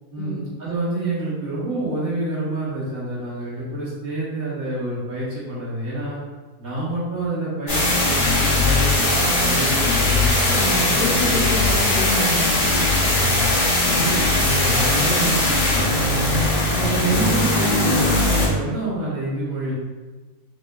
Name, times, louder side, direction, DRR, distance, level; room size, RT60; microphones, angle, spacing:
voice 1, 0.1-6.2 6.6-11.8 13.1-13.4 13.8-16.5 16.8-19.7, right 1 dB, 65° right, -9 dB, 1.6 m, -27 dB
sound 1, 7.7-18.5, left 2 dB, 80° left, 2.1 m, -19 dB
voice 2, 10.5-13.0 13.9-14.1 16.7-16.9, left 2 dB, 45° left, -5 dB, 0.5 m, -29 dB
4.9 x 2.0 x 2.2 m, 1.3 s
omnidirectional pair, 1.6 m